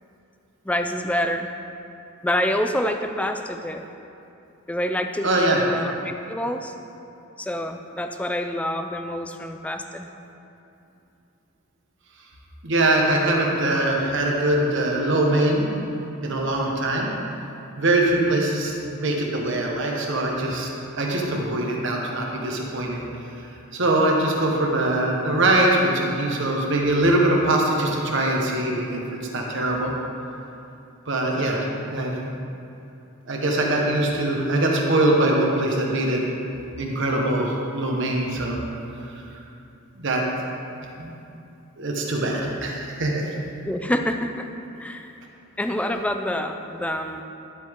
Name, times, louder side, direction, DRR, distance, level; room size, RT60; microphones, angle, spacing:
voice 1, 0.6-1.5 2.2-3.9 4.7-6.7 7.4-10.1 43.6-44.5 44.8-45.1 45.6-47.2, left 1 dB, 5° left, 6 dB, 0.4 m, -27 dB
voice 2, 5.2-5.6 12.6-15.7 16.2-17.1 17.8-20.7 21.0-23.0 23.7-29.9 31.1-32.2 33.3-36.2 36.8-38.6 40.0-40.2 41.0-41.1 41.8-43.3, right 1 dB, 60° right, -1 dB, 1.3 m, -22 dB
11.5 x 8.0 x 3.7 m, 2.7 s
head